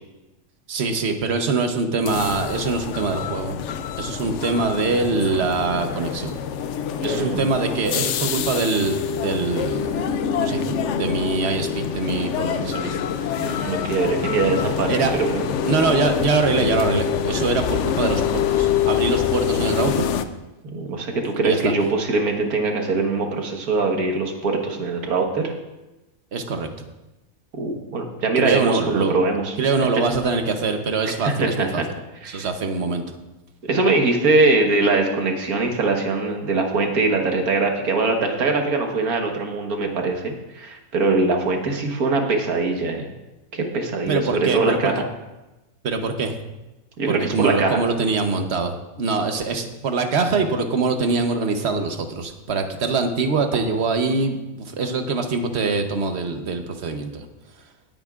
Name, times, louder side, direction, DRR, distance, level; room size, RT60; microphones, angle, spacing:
voice 1, 0.7-3.6 4.0-6.4 7.0-10.0 10.3-13.0 14.9-15.2 15.6-20.1 21.4-21.7 26.3-26.7 28.4-29.2 29.6-31.8 32.3-33.0 44.1-44.9 45.8-46.4 47.1-57.2, right 4 dB, 50° right, 6 dB, 1.1 m, -23 dB
sound 1, 2.1-20.3, left 8 dB, 65° left, 0.8 m, -25 dB
voice 2, 7.0-7.4 8.0-8.1 13.4-15.5 20.6-25.5 27.6-29.6 31.2-31.9 32.2-32.5 33.6-43.1 43.5-45.0 47.0-47.8, right 3 dB, 80° right, 3 dB, 1.8 m, -22 dB
20.0 x 8.9 x 2.4 m, 1.0 s
omnidirectional pair, 1.6 m